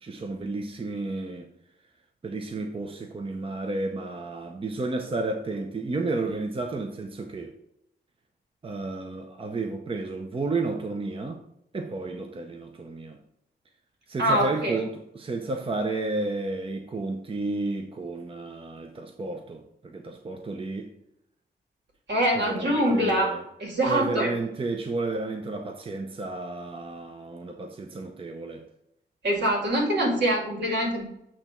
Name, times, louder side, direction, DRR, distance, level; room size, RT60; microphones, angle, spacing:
voice 1, 0.0-1.5 2.2-7.5 8.6-11.4 11.7-13.2 14.1-20.9 22.3-23.4 23.9-28.6, right 3 dB, 30° right, 0.7 m, -32 dB
voice 2, 14.2-14.8 22.1-23.3 23.6-24.3 29.2-31.0, right 1 dB, 80° right, 2.2 m, -24 dB
8.6 x 3.0 x 4.4 m
wide cardioid pair, 100°, 18 cm